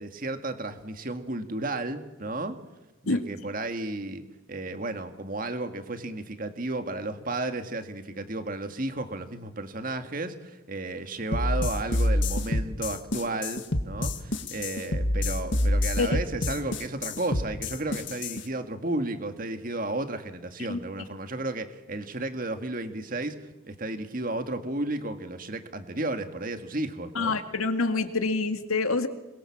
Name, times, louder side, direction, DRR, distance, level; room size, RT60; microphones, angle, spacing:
voice 1, 0.0-2.6 3.0-4.2 4.5-23.4 23.6-27.4, right 2 dB, 40° right, 8 dB, 2.0 m, -33 dB
sound 1, 11.3-18.4, left 1 dB, 60° left, 2.0 m, -27 dB
voice 2, 27.2-29.1, left 3 dB, 90° left, 8 dB, 2.2 m, -26 dB
27.0 x 22.5 x 7.4 m, 1.0 s
head